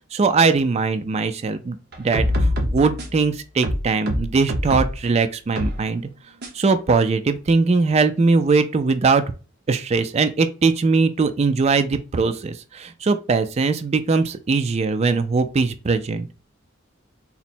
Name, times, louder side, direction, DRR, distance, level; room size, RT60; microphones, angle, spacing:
voice 1, 0.1-6.0 6.5-9.2 9.7-16.3, right 4 dB, 35° right, 0.4 m, -20 dB
sound 1, 1.9-3.2 3.6-5.0 5.6-5.8 6.4-6.5, equal, 55° right, 1.0 m, -23 dB
4.0 x 2.1 x 4.2 m
head